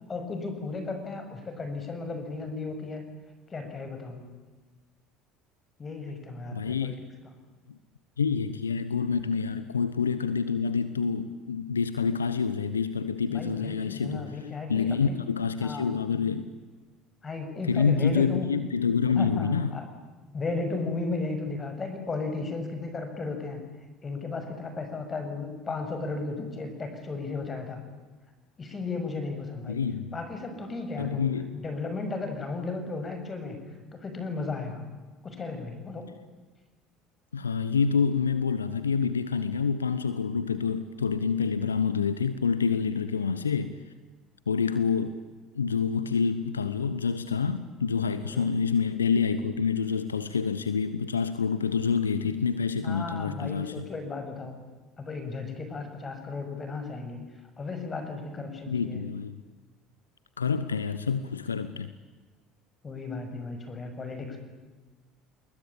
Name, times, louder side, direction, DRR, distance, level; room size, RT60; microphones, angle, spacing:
voice 1, 0.1-3.0 3.5-4.3 5.8-7.4 13.3-15.2 15.6-15.9 17.2-18.5 19.2-19.9 20.3-23.7 24.0-27.9 28.6-29.8 30.1-31.3 31.5-33.6 33.9-34.9 35.2-36.1 48.3-48.6 52.8-54.7 55.0-57.2 57.6-59.1 62.8-64.4, left 3 dB, 30° left, 7.3 m, -35 dB
voice 2, 6.5-7.0 7.7-7.8 8.2-14.3 14.7-16.5 17.7-19.7 29.7-30.2 31.0-31.6 37.3-43.8 44.5-45.2 45.5-53.9 58.7-59.4 60.4-61.9, left 5 dB, 85° left, 1.0 m, -27 dB
28.5 x 21.0 x 8.9 m
hypercardioid pair, 65°, 0 cm